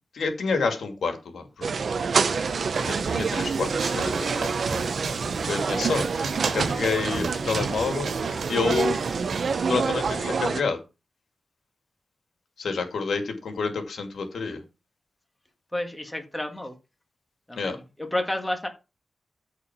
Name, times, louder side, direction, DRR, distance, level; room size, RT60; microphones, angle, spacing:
voice 1, 0.1-1.7 2.9-4.7 5.4-6.3 6.5-8.1 8.5-9.0 9.7-10.8 12.6-14.6 17.6-17.8, left 4 dB, 85° left, 2.4 m, -28 dB
sound 1, 1.6-10.6, right 5 dB, 55° right, 0.8 m, -27 dB
sound 2, 2.0-10.2, right 4 dB, 90° right, 2.0 m, -36 dB
voice 2, 15.7-16.7 17.5-18.7, left 1 dB, 10° left, 1.9 m, -30 dB
14.0 x 4.7 x 6.0 m
wide cardioid pair, 150°, 0 cm